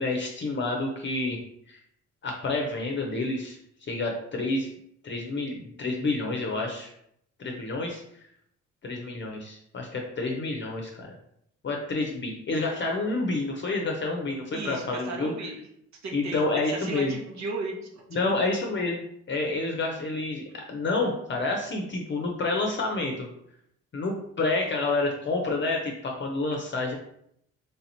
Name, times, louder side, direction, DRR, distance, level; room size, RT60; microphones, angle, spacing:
voice 1, 0.0-1.4 1.7-1.8 2.2-3.6 3.9-4.7 5.0-6.9 7.4-8.0 8.8-11.2 11.6-15.3 16.1-17.1 18.1-19.0 19.3-23.3 23.9-27.0, left 3 dB, 40° left, 1 dB, 0.7 m, -29 dB
voice 2, 14.5-15.7 16.0-18.5, right 3 dB, 65° right, 0 dB, 1.2 m, -36 dB
3.4 x 2.8 x 4.1 m, 0.72 s
cardioid pair, 90°, 30 cm